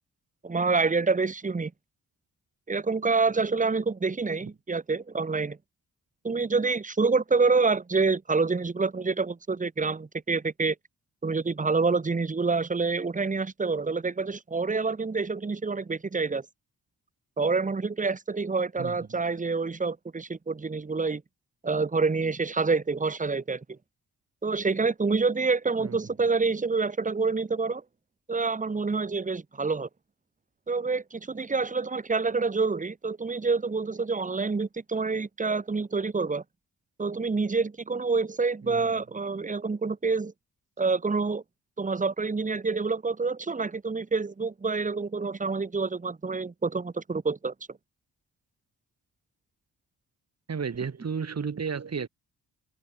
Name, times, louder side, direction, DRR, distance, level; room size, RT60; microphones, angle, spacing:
voice 1, 0.4-1.7 2.7-5.6 6.2-10.7 11.2-16.4 17.4-21.2 21.6-23.8 24.4-27.8 28.3-29.9 30.7-36.4 37.0-40.3 40.8-41.4 41.8-47.5, right 4 dB, 20° right, 1.4 m, -27 dB
voice 2, 18.8-19.2 25.8-26.0 38.6-38.9 50.5-52.1, right 6 dB, 45° right, 7.0 m, -33 dB
cardioid pair, 105°, 35 cm